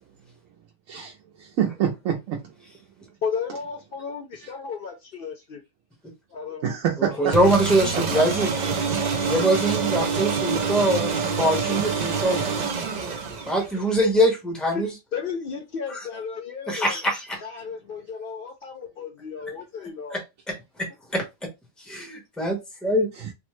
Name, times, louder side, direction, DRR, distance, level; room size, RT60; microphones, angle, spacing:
voice 1, 1.4-2.4 6.6-7.4 7.9-8.2, right 9 dB, 85° right, 1.0 m, -26 dB
voice 2, 3.2-5.6 6.3-6.8 7.0-7.3 13.5-13.6 14.0-14.1 14.7-17.0 17.4-20.2, left 6 dB, 60° left, 0.6 m, -34 dB
voice 3, 7.0-8.5 9.3-12.5 13.5-14.9 15.9-16.0 16.7-17.4 20.1-20.2 20.5-21.2 21.9-23.1, right 1 dB, ahead, 0.8 m, -23 dB
sound 1, 7.3-13.9, right 5 dB, 60° right, 0.4 m, -26 dB
3.4 x 2.0 x 3.0 m
omnidirectional pair, 1.4 m